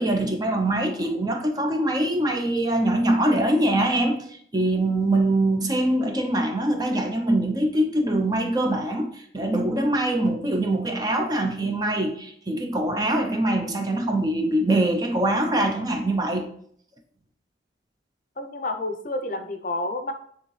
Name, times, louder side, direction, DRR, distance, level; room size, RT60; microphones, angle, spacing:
voice 1, 0.0-16.5, right 1 dB, 20° right, 0.6 m, -23 dB
voice 2, 18.4-20.1, left 2 dB, 45° left, 0.6 m, -29 dB
9.4 x 3.5 x 3.2 m
head